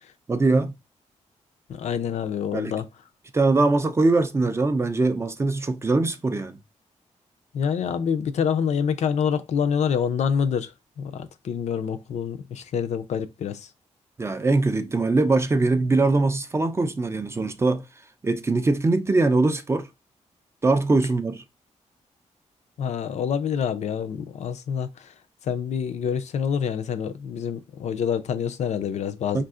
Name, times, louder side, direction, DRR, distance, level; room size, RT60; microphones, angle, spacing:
voice 1, 0.3-0.7 2.5-2.7 3.3-6.6 14.2-17.8 18.2-19.9 20.6-21.4 29.3-29.4, right 3 dB, 20° right, 0.3 m, -22 dB
voice 2, 1.7-2.9 7.5-10.7 11.0-13.7 22.8-25.1 25.4-29.4, left 7 dB, 65° left, 0.4 m, -26 dB
3.6 x 2.4 x 2.4 m
wide cardioid pair, 125°, 12 cm